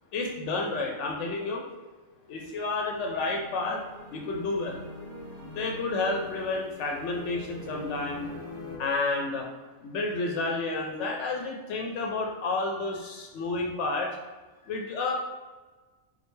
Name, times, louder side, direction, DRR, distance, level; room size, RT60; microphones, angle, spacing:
voice 1, 0.1-1.7 2.3-3.8 4.1-4.8 5.4-8.3 8.8-9.5 9.8-14.2 14.7-15.1, left 3 dB, 75° left, 0 dB, 0.9 m, -30 dB
sound 1, 2.2-8.8, left 1 dB, 35° right, 1.1 m, -43 dB
4.0 x 3.1 x 3.2 m, 1.3 s
omnidirectional pair, 1.3 m